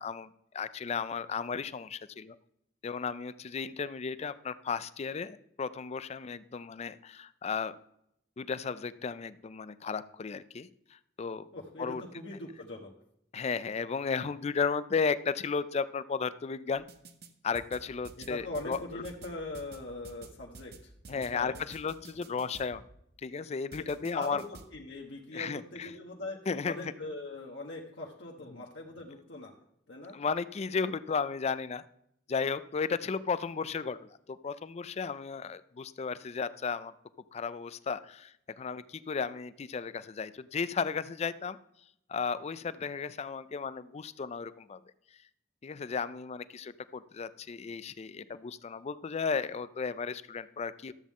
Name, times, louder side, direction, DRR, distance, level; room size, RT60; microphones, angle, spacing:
voice 1, 0.0-2.4 2.8-7.8 8.4-11.5 11.8-12.0 13.3-16.8 17.4-18.8 21.1-22.8 23.2-24.4 25.3-25.9 26.5-26.9 28.5-28.6 30.1-31.8 32.3-36.9 37.3-41.6 42.1-44.8 45.6-50.9, left 5 dB, 35° left, 15 dB, 0.4 m, -34 dB
voice 2, 11.5-12.9 18.2-21.6 24.1-26.4 26.7-29.5 29.9-30.2, left 2 dB, 70° left, -1 dB, 1.1 m, -41 dB
sound 1, 16.8-17.3 17.5-22.8 23.7-24.7, right 4 dB, 60° right, 0.9 m, -50 dB
12.5 x 7.3 x 3.6 m, 0.76 s
head